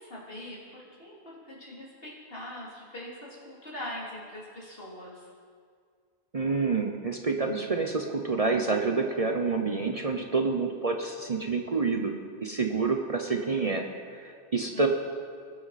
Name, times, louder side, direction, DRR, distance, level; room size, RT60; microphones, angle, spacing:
voice 1, 0.0-5.2 14.7-14.9, left 1 dB, 60° left, -5 dB, 3.2 m, -42 dB
voice 2, 6.3-12.1 12.4-14.9, right 4 dB, 40° right, 3 dB, 0.8 m, -28 dB
20.5 x 9.3 x 4.2 m, 2.1 s
omnidirectional pair, 1.1 m